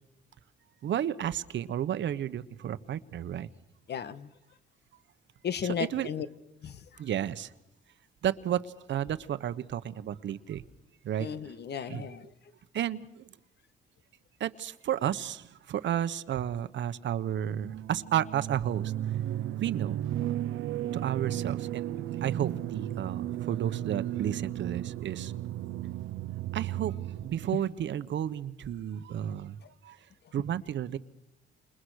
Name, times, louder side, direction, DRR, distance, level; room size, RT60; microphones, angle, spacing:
voice 1, 0.8-3.5 5.6-6.1 7.0-7.5 8.2-10.6 11.0-11.3 11.9-12.1 12.7-13.3 14.4-18.9 19.6-20.1 20.9-21.9 22.2-25.3 26.5-29.6 29.8-30.0 30.3-31.0, right 10 dB, 65° right, 14 dB, 1.3 m, -32 dB
voice 2, 3.9-4.3 5.4-6.3 6.6-6.8 11.2-12.3 27.5-27.6, left 8 dB, 55° left, 12 dB, 1.8 m, -34 dB
sound 1, 17.6-27.5, right 12 dB, 80° right, 0.9 m, -34 dB
29.0 x 28.0 x 6.6 m, 0.88 s
cardioid pair, 90°, 20 cm